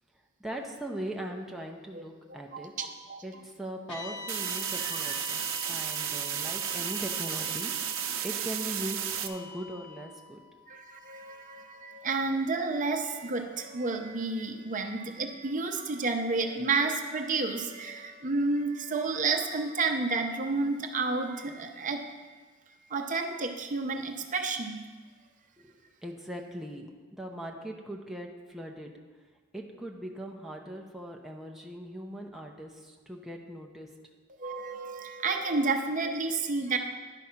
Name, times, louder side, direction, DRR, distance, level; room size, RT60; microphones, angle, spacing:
voice 1, 0.4-2.7 3.2-10.4 26.0-28.9 29.5-33.9, right 1 dB, ahead, 0 dB, 0.6 m, -40 dB
voice 2, 2.3-3.2 4.8-5.2 10.7-22.2 22.9-24.8 34.4-36.8, right 3 dB, 40° right, 4 dB, 0.7 m, -31 dB
sound 1, 3.9-12.2, left 2 dB, 60° left, 1.5 m, -44 dB
sound 2, 4.3-9.3, right 10 dB, 80° right, 0.6 m, -33 dB
10.5 x 4.9 x 5.7 m, 1.4 s
head